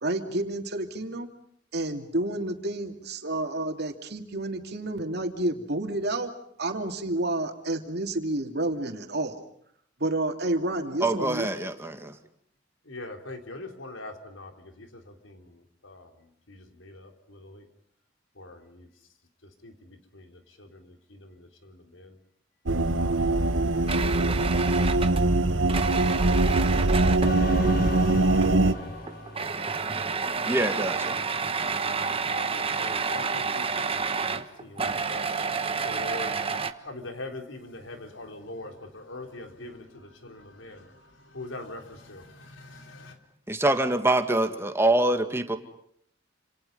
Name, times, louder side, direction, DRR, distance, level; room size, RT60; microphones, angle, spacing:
voice 1, 0.0-1.3 1.7-6.3 6.6-9.3 10.0-11.5, right 1 dB, 60° right, 5 dB, 2.9 m, -30 dB
voice 2, 11.0-12.1 30.5-31.2 43.5-45.6, right 2 dB, 15° right, 7 dB, 2.2 m, -25 dB
voice 3, 12.9-16.1 16.5-17.7 18.4-18.9 19.6-22.2 23.0-23.4 23.8-25.0 25.4-27.2 27.9-28.9 32.3-34.1 34.4-35.5 35.8-36.4 36.8-43.2, left 2 dB, 85° left, 4 dB, 4.1 m, -43 dB
sound 1, 22.7-28.7, right 2 dB, 90° right, 1.3 m, -22 dB
sound 2, 23.9-27.4 28.3-28.8 29.1-36.7, right 5 dB, 30° right, 1.3 m, -30 dB
sound 3, 27.2-30.7, left 1 dB, 55° left, 6.5 m, -35 dB
29.0 x 28.0 x 5.6 m, 0.70 s
head